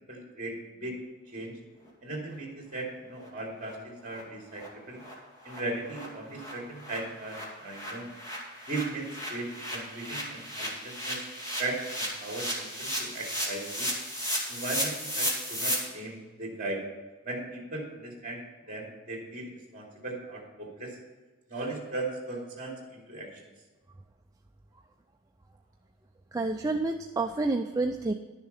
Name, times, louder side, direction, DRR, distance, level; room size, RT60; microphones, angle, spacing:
voice 1, 0.1-0.9 1.3-1.5 2.0-5.0 5.4-8.1 8.7-11.2 11.6-13.9 14.5-16.8 17.2-21.0 21.5-23.4, right 2 dB, 40° right, 0 dB, 2.9 m, -37 dB
sound 1, 2.8-2.9 3.2-3.3 3.6-3.8 4.1-4.2 4.5-4.7 5.0-5.1 5.5-5.6 5.8-15.7, equal, 15° left, 2.3 m, -35 dB
voice 2, 26.3-28.1, right 3 dB, 15° right, 4 dB, 0.4 m, -29 dB
11.5 x 7.0 x 5.5 m, 1.3 s
head